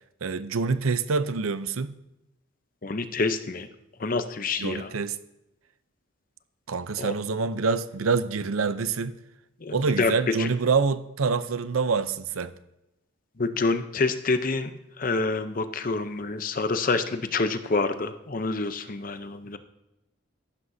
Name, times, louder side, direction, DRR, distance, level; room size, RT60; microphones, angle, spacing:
voice 1, 0.2-1.9 4.6-5.2 6.7-9.1 9.7-12.5, right 4 dB, 90° right, 0.6 m, -26 dB
voice 2, 2.8-3.7 4.0-4.9 7.0-7.1 9.6-10.1 10.4-10.5 13.4-14.7 15.0-19.6, left 3 dB, 40° left, 0.7 m, -27 dB
14.5 x 12.0 x 2.7 m
head